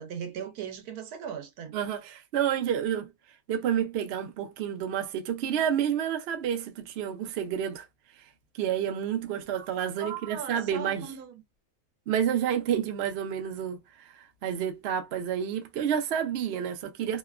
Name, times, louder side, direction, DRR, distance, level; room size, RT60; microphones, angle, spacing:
voice 1, 0.0-1.8 9.5-9.7 10.0-11.4, right 7 dB, 85° right, 1.2 m, -38 dB
voice 2, 1.7-3.1 3.5-7.8 8.5-11.0 12.1-13.8 14.1-17.2, right 9 dB, 60° right, 0.7 m, -29 dB
2.8 x 2.1 x 2.3 m
omnidirectional pair, 1.6 m